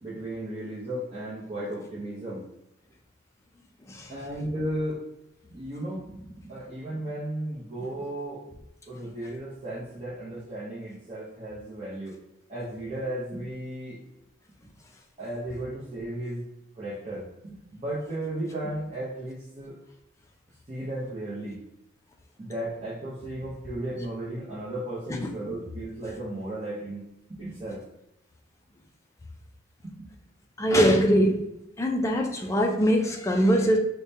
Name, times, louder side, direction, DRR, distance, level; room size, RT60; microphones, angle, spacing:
voice 1, 0.0-2.4 4.1-5.0 5.5-8.4 8.9-12.2 12.5-14.0 15.2-16.4 16.8-19.8 20.7-21.6 22.4-27.0 27.3-27.8 29.8-30.1, right 1 dB, 25° right, -9 dB, 0.7 m, -35 dB
voice 2, 30.6-31.4 31.8-33.8, equal, 15° left, 1 dB, 0.3 m, -22 dB
4.8 x 2.2 x 2.7 m, 0.87 s
head